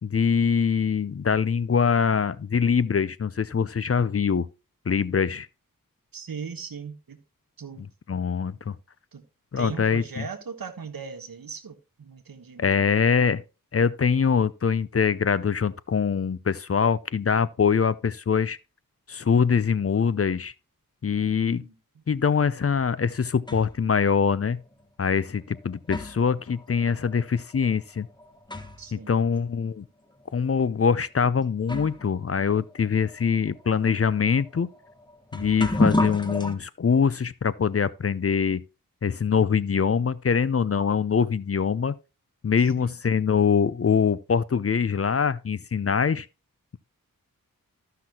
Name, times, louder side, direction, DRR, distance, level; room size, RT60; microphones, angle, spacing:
voice 1, 0.0-4.5 4.9-5.5 8.1-8.8 9.5-10.2 12.6-13.4 13.7-18.6 19.1-20.5 21.0-21.6 22.1-24.6 25.0-28.1 28.9-29.8 30.3-34.7 35.3-38.6 39.0-42.0 42.4-46.3, left 6 dB, 40° left, 0.5 m, -23 dB
voice 2, 6.1-7.2 7.6-7.8 9.1-9.2 9.6-12.9 21.1-22.0 28.8-29.2 42.6-42.9, right 6 dB, 75° right, 1.3 m, -39 dB
sound 1, 23.0-23.9 24.8-24.9 25.5-29.0 29.3-29.4 30.2-30.3 31.2-31.3 31.6-36.5, left 1 dB, 10° left, 1.4 m, -32 dB
14.0 x 5.8 x 2.9 m
cardioid pair, 45°, 35 cm